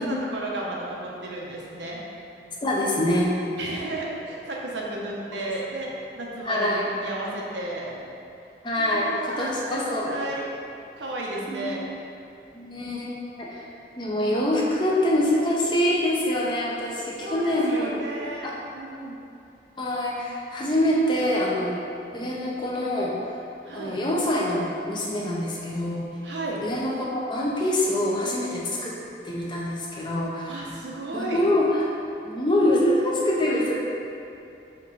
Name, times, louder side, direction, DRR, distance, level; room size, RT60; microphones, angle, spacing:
voice 1, 0.0-2.0 3.6-8.0 8.8-9.8 10.0-10.4 11.0-11.8 17.2-19.2 23.6-24.0 26.2-26.6 29.9-30.0 30.5-31.4, right 2 dB, 85° right, -3 dB, 0.8 m, -33 dB
voice 2, 2.6-3.3 5.3-5.5 6.5-6.9 8.6-10.1 11.5-11.7 12.5-13.6 14.0-18.1 18.4-18.5 19.0-19.1 19.8-21.8 22.1-23.1 23.7-26.1 26.6-28.9 29.2-30.7 31.1-31.8 32.2-33.8, left 1 dB, 25° left, -4 dB, 0.5 m, -25 dB
4.4 x 3.0 x 4.0 m, 2.7 s
head